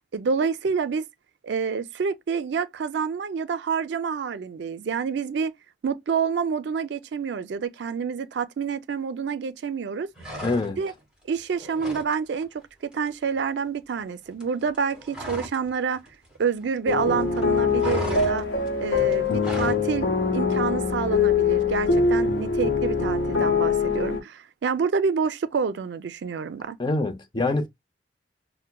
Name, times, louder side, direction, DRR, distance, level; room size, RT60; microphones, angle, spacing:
voice 1, 0.1-1.0 1.4-5.5 5.8-10.1 10.8-10.9 11.3-16.0 16.4-18.5 18.8-20.1 20.3-26.8, right 6 dB, 70° right, 0.4 m, -28 dB
sound 1, 10.2-11.0 11.3-12.1 12.4-12.6 12.9-15.7 15.9-17.0 17.3-19.9, right 1 dB, 5° right, 1.4 m, -36 dB
voice 2, 10.4-10.8 26.8-27.7, left 2 dB, 25° left, 0.5 m, -25 dB
sound 2, 16.9-24.2, left 5 dB, 90° left, 0.8 m, -23 dB
5.5 x 2.1 x 2.2 m
head